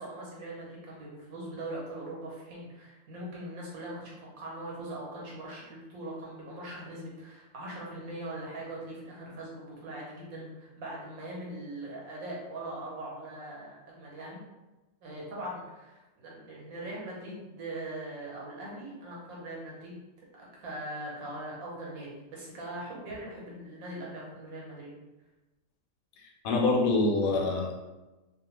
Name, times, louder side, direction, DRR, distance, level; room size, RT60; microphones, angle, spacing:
voice 1, 0.0-14.4 15.0-20.0 20.3-25.0, right 1 dB, 85° right, -4 dB, 1.3 m, -41 dB
voice 2, 26.2-27.7, left 3 dB, 80° left, 0 dB, 1.0 m, -26 dB
2.7 x 2.2 x 3.0 m, 1.1 s
omnidirectional pair, 1.5 m